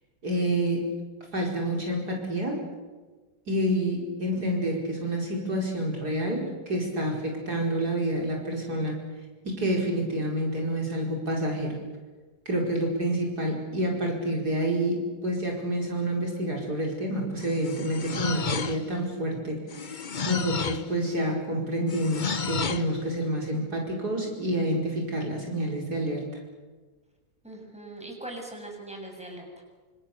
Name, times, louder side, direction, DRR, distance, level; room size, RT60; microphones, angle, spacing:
voice 1, 0.2-0.9 1.3-2.7 3.5-9.0 9.4-11.8 12.5-26.3, right 1 dB, 60° right, 0 dB, 5.4 m, -28 dB
sound 1, 17.4-19.0 19.7-20.9 21.9-22.9, left 6 dB, 40° left, 0.7 m, -31 dB
voice 2, 27.4-29.4, right 2 dB, 5° right, 1 dB, 7.1 m, -40 dB
28.5 x 26.5 x 6.9 m, 1.3 s
omnidirectional pair, 1.9 m